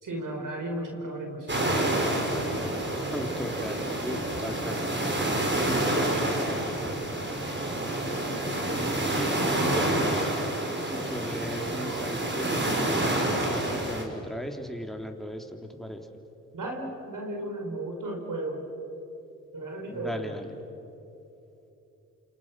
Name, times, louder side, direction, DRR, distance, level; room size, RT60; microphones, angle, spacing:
voice 1, 0.0-2.0 16.5-18.6 19.5-20.3, right 1 dB, 60° right, 2 dB, 5.6 m, -35 dB
sound 1, 1.5-14.0, right 1 dB, 30° right, 5.3 m, -28 dB
voice 2, 3.1-5.1 8.7-10.3 10.8-16.1 19.8-20.5, equal, ahead, 3 dB, 3.5 m, -37 dB
28.5 x 28.0 x 6.5 m, 2.9 s
supercardioid pair, 50°, 37 cm